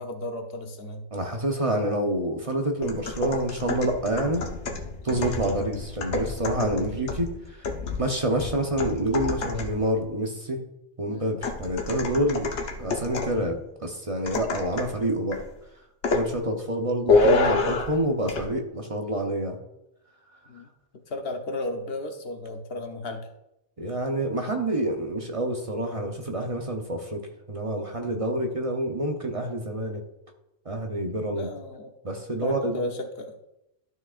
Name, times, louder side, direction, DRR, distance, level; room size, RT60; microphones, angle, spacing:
voice 1, 0.0-1.1 11.1-11.3 20.5-20.7 21.1-23.3 31.3-31.9 32.4-33.4, left 1 dB, 65° left, 4 dB, 1.1 m, -34 dB
voice 2, 1.1-4.4 5.0-7.7 8.0-10.6 11.0-12.5 12.8-15.4 16.1-19.6 23.8-30.0 30.6-31.5 32.0-32.9, right 1 dB, 35° right, 3 dB, 0.8 m, -27 dB
sound 1, 2.8-9.9 11.4-13.4 14.3-15.0 15.3-15.5 16.0-16.3 17.1-18.0 18.3-18.5, left 3 dB, 85° left, 1.2 m, -28 dB
12.5 x 6.2 x 2.5 m, 0.88 s
omnidirectional pair, 1.1 m